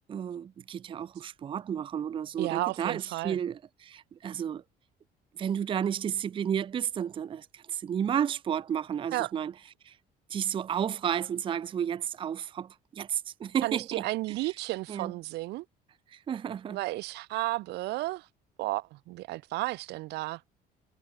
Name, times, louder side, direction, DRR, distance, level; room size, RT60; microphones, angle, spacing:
voice 1, 0.1-4.6 5.4-9.5 9.9-10.0 10.3-14.0 14.9-15.1 16.1-16.8, right 8 dB, 30° right, 0.4 m, -32 dB
voice 2, 2.4-3.4 9.1-9.3 13.6-15.6 16.7-18.3 18.6-20.4, right 19 dB, 80° right, 0.5 m, -33 dB
cardioid pair, 110°, 17 cm